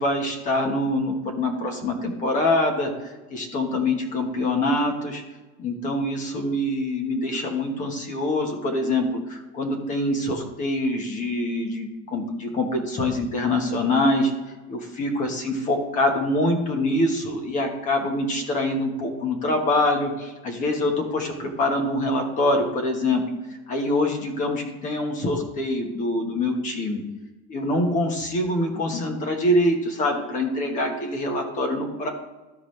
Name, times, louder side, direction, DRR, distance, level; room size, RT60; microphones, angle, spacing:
voice 1, 0.0-2.9 3.3-5.2 5.6-14.3 14.7-23.2 23.7-27.0 27.5-32.1, left 1 dB, 20° left, 3 dB, 1.2 m, -24 dB
14.0 x 4.9 x 3.2 m, 1.2 s
supercardioid pair, 170°, 34 cm